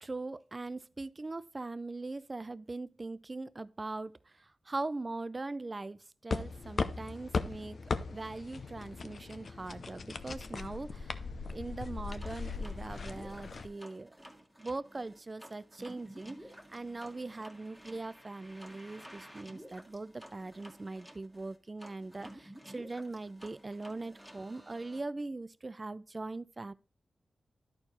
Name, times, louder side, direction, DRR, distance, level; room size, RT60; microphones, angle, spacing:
voice 1, 0.0-4.1 4.4-7.8 8.1-11.2 11.5-14.1 14.6-16.4 16.7-26.7, right 2 dB, 35° right, 0.4 m, -41 dB
sound 1, 6.3-13.7, left 4 dB, 65° left, 0.6 m, -38 dB
sound 2, 12.2-25.0, equal, ahead, 1.5 m, -53 dB
11.0 x 4.5 x 4.1 m
cardioid pair, 65°, 0 cm